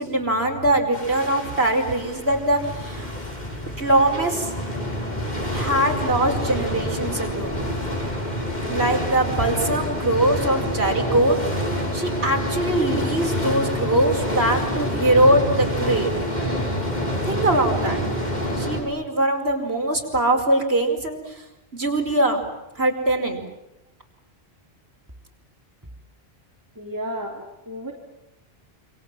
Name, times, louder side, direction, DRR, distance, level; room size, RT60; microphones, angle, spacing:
voice 1, 0.0-3.1 3.8-4.5 5.5-7.6 8.7-11.4 11.7-16.1 17.2-18.0 18.6-21.4 21.7-22.4 22.7-23.4, right 1 dB, 80° right, 2 dB, 5.2 m, -22 dB
sound 1, 0.9-18.8, equal, 45° left, 6.4 m, -27 dB
voice 2, 26.8-27.9, equal, 20° right, 1 dB, 3.2 m, -32 dB
28.0 x 25.5 x 7.5 m, 0.95 s
omnidirectional pair, 1.1 m